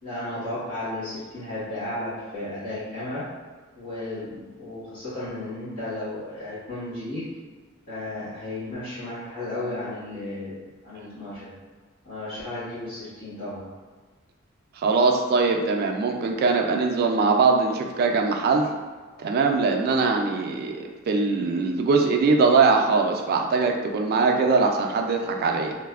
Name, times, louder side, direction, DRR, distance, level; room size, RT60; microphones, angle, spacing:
voice 1, 0.0-3.4 3.7-7.4 7.9-10.6 10.8-11.6 12.0-13.7, left 1 dB, 50° left, -17 dB, 1.5 m, -34 dB
voice 2, 14.8-18.7 19.2-25.8, right 4 dB, 50° right, 3 dB, 0.3 m, -22 dB
3.1 x 2.0 x 2.3 m, 1.4 s
head